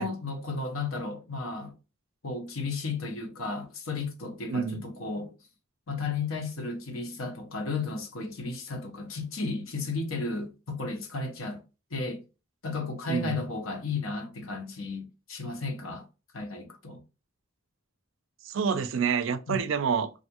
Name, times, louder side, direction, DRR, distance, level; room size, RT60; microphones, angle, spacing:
voice 1, 0.0-1.7 2.2-5.3 5.9-11.6 11.9-12.2 12.6-16.1 16.3-17.0 19.5-19.6, left 3 dB, 80° left, 0.9 m, -34 dB
voice 2, 4.5-4.8 13.1-13.5 18.4-20.1, right 6 dB, 65° right, 0.4 m, -28 dB
3.4 x 2.5 x 2.8 m
head